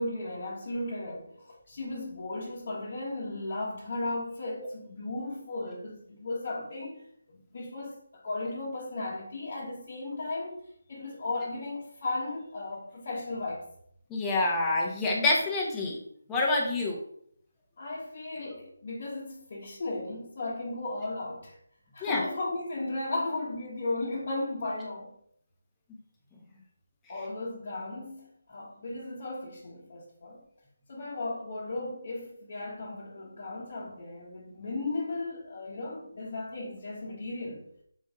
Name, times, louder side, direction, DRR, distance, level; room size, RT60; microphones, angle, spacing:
voice 1, 0.0-10.6 10.9-13.7 17.8-21.6 21.9-25.1 27.1-30.5 30.9-37.6, left 2 dB, 45° left, 1.3 m, -35 dB
voice 2, 14.1-16.0 16.3-17.0 22.0-22.3, left 2 dB, 10° left, 1.2 m, -27 dB
6.3 x 4.6 x 3.6 m
figure-of-eight pair, 165°, 0 cm